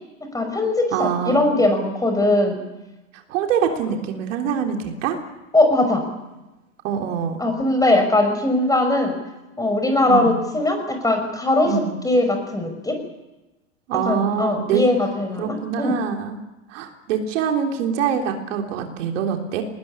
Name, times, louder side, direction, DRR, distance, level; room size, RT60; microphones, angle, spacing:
voice 1, 0.3-2.6 5.5-6.0 7.4-9.1 9.6-11.7 12.0-13.0 14.1-16.0, left 2 dB, 10° left, 5 dB, 5.8 m, -20 dB
voice 2, 0.9-1.5 3.1-5.2 6.8-7.4 10.1-10.4 11.6-12.0 13.9-14.8 15.4-16.4 16.7-19.6, right 7 dB, 70° right, 3 dB, 3.5 m, -24 dB
20.5 x 19.5 x 9.9 m, 1.0 s
hypercardioid pair, 115°, 40 cm